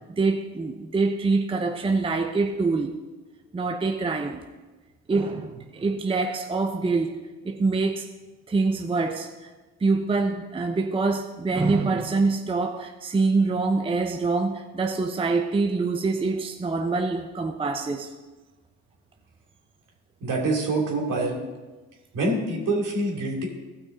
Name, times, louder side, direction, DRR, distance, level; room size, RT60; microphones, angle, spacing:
voice 1, 0.0-2.9 3.5-4.4 5.1-7.2 7.4-8.1 8.5-9.5 9.8-18.1, right 3 dB, 15° right, 0.7 m, -25 dB
voice 2, 20.2-21.4 22.1-23.5, right 2 dB, 65° right, 3.0 m, -25 dB
15.0 x 6.0 x 3.9 m
supercardioid pair, 75°, 35 cm